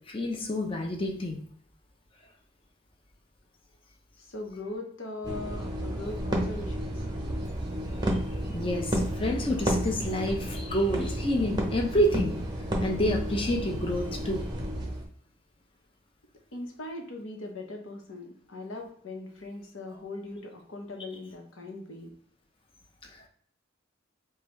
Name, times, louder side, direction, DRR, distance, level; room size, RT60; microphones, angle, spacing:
voice 1, 0.1-1.4 8.5-12.3 12.8-14.5, equal, 25° left, 1 dB, 0.6 m, -28 dB
voice 2, 4.2-7.0 16.5-22.1, left 2 dB, 80° left, 2 dB, 0.9 m, -40 dB
sound 1, 5.2-15.1, right 1 dB, 20° right, 0.6 m, -31 dB
5.0 x 2.3 x 3.1 m, 0.63 s
head